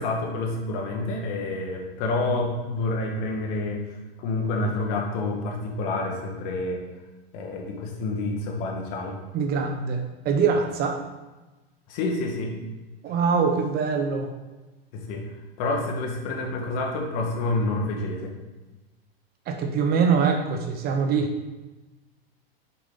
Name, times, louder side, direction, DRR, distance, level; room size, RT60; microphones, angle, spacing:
voice 1, 0.0-3.8 4.2-6.8 7.3-9.2 11.9-12.5 14.9-15.2 15.6-18.3, left 2 dB, 50° left, 1 dB, 1.6 m, -28 dB
voice 2, 9.3-11.0 13.0-14.3 19.5-21.3, right 5 dB, 30° right, 5 dB, 0.7 m, -23 dB
6.9 x 5.1 x 3.8 m, 1.1 s
hypercardioid pair, 130°, 30 cm